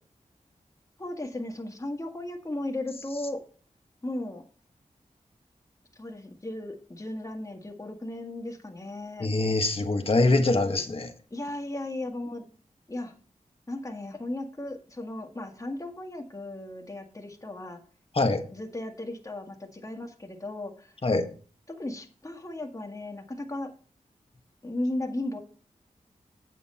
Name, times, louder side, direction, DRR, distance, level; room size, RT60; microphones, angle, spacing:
voice 1, 1.0-3.4 4.0-4.4 6.0-9.3 11.3-12.5 12.9-13.1 13.7-17.8 18.5-20.9 21.7-23.7 24.6-25.4, left 1 dB, 25° left, 3 dB, 1.8 m, -36 dB
voice 2, 9.2-11.1 18.1-18.4 21.0-21.3, left 2 dB, 45° left, 5 dB, 1.4 m, -24 dB
8.4 x 7.7 x 4.2 m, 0.42 s
cardioid pair, 55°, 13 cm